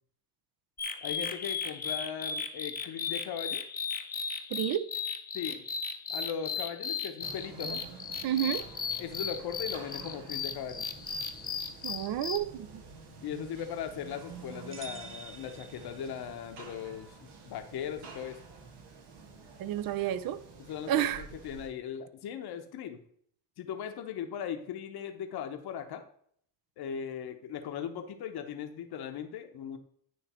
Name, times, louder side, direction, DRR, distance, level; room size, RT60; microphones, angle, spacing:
sound 1, 0.8-12.4, left 5 dB, 25° left, 0.6 m, -36 dB
voice 1, 1.0-3.7 5.3-5.6 6.1-7.8 9.0-10.9 13.2-18.4 20.7-23.0 23.6-26.0 26.8-29.8, left 8 dB, 65° left, 0.9 m, -38 dB
voice 2, 4.5-4.9 8.2-8.6 11.8-12.8 19.6-20.4 20.9-21.2, right 11 dB, 60° right, 0.5 m, -30 dB
sound 2, 7.2-21.7, right 5 dB, 80° right, 1.4 m, -49 dB
sound 3, 14.7-16.5, right 4 dB, 30° right, 0.9 m, -48 dB
9.3 x 3.2 x 4.3 m
cardioid pair, 105°, 40 cm